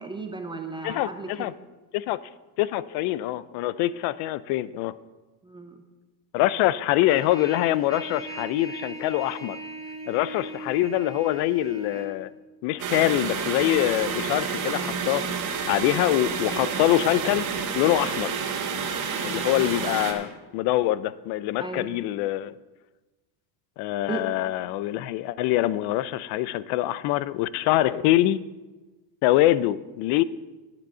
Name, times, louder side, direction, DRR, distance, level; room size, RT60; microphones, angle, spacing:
voice 1, 0.0-1.5 5.4-5.8 21.6-21.9 24.1-24.2, right 4 dB, 10° right, 4 dB, 0.3 m, -35 dB
voice 2, 0.8-1.5 1.9-2.2 2.6-4.9 6.3-9.6 10.1-12.3 12.6-15.3 15.7-17.5 17.7-18.3 19.2-22.5 23.8-28.4 29.2-30.2, left 15 dB, 50° left, 18 dB, 0.5 m, -24 dB
Trumpet, 7.1-12.1, right 1 dB, 5° left, 1.4 m, -38 dB
sound 1, 12.8-20.1, right 6 dB, 40° right, 1.8 m, -29 dB
10.5 x 9.0 x 5.5 m, 1.2 s
cardioid pair, 145°, 50 cm